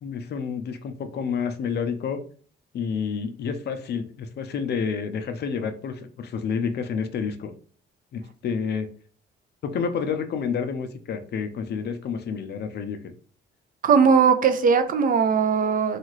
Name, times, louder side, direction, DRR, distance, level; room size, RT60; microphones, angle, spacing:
voice 1, 0.0-2.2 2.7-7.5 8.1-8.9 9.6-13.0, left 6 dB, 55° left, 0.5 m, -29 dB
voice 2, 13.8-16.0, right 6 dB, 45° right, 0.4 m, -19 dB
2.7 x 2.4 x 3.0 m
cardioid pair, 90°, 20 cm